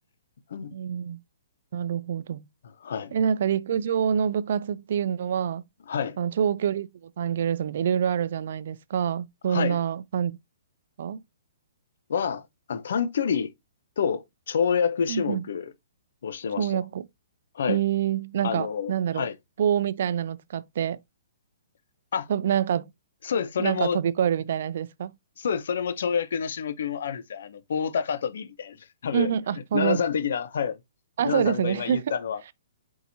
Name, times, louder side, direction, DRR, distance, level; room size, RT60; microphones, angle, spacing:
voice 1, 0.7-1.2 1.7-2.4 3.1-5.6 6.2-10.4 11.0-11.2 15.1-15.4 16.6-17.0 17.7-19.3 19.6-21.0 22.3-22.9 23.6-25.1 29.1-30.0 31.2-32.0, right 8 dB, 60° right, 0.4 m, -26 dB
voice 2, 2.6-3.1 5.9-6.2 9.5-9.8 12.1-12.4 12.7-13.5 14.0-15.7 16.2-16.7 17.5-17.8 18.4-19.3 22.1-22.3 23.2-24.0 25.4-29.3 29.7-30.8 31.2-32.4, left 7 dB, 65° left, 0.7 m, -28 dB
4.6 x 4.2 x 2.6 m
hypercardioid pair, 135°, 0 cm